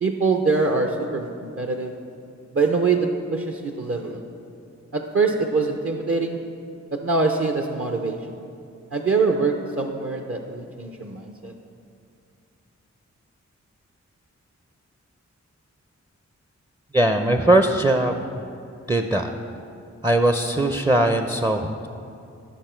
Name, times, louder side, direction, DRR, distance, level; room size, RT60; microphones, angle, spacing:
voice 1, 0.0-1.9 2.5-4.2 4.9-6.4 6.9-8.2 8.9-11.5, right 4 dB, 45° right, 4 dB, 0.7 m, -24 dB
voice 2, 16.9-18.3 18.9-19.3 20.0-21.9, right 1 dB, 15° right, 6 dB, 0.5 m, -20 dB
11.5 x 6.3 x 4.4 m, 2.5 s
cardioid pair, 50°, 30 cm